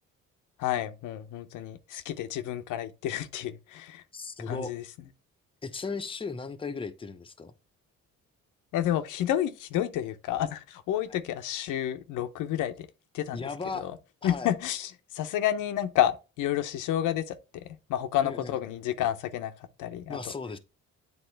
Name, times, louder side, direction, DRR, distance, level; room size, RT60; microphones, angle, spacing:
voice 1, 0.6-4.0 4.5-4.8 8.7-12.9 13.1-13.5 13.7-14.0 14.2-19.5 19.8-20.2, left 11 dB, 90° left, 0.7 m, -30 dB
voice 2, 4.1-4.7 5.6-7.5 11.1-11.2 13.3-13.9 14.3-14.5 18.2-18.6 20.1-20.6, left 4 dB, 15° left, 0.7 m, -36 dB
8.0 x 3.6 x 3.2 m
cardioid pair, 90°, 30 cm